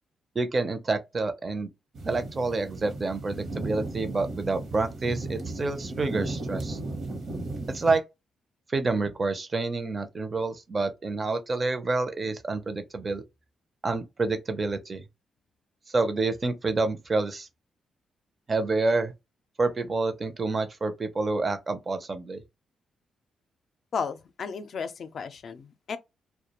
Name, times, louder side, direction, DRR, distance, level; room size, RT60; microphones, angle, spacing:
voice 1, 0.3-1.7 2.0-6.8 7.7-8.0 8.7-13.2 13.8-15.0 15.9-17.5 18.5-19.1 19.6-22.4, right 3 dB, 35° right, 0.5 m, -28 dB
sound 1, 1.9-8.0, right 2 dB, 60° right, 0.9 m, -35 dB
voice 2, 23.9-26.0, left 6 dB, 55° left, 0.4 m, -34 dB
2.3 x 2.1 x 2.8 m
cardioid pair, 100°, 0 cm